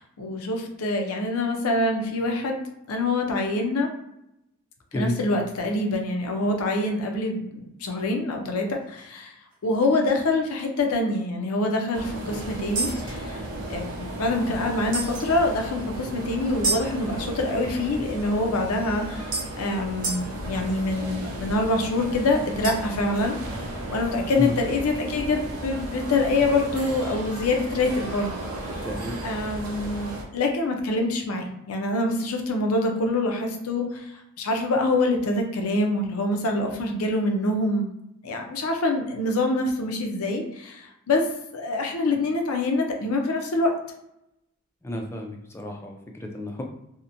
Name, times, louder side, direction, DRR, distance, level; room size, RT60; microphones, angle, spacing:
voice 1, 0.0-2.6 2.9-3.9 4.9-9.3 9.6-13.4 13.7-23.6 23.9-28.3 29.2-37.9 38.2-41.2 41.5-43.7, left 2 dB, 85° left, 3 dB, 0.5 m, -25 dB
sound 1, 8.8-9.0 9.5-9.7 9.9-10.1 10.6-10.7 12.8-14.0 14.9-15.3 16.6-16.9 18.6-18.7 19.3-19.5 20.0-20.3 22.6-23.0, right 3 dB, 40° right, 0.6 m, -30 dB
sound 2, 11.9-30.2, right 1 dB, 90° right, 0.6 m, -35 dB
voice 2, 28.8-29.2 44.8-46.6, left 1 dB, 10° left, 2 dB, 0.3 m, -31 dB
2.8 x 2.1 x 2.5 m, 0.83 s
head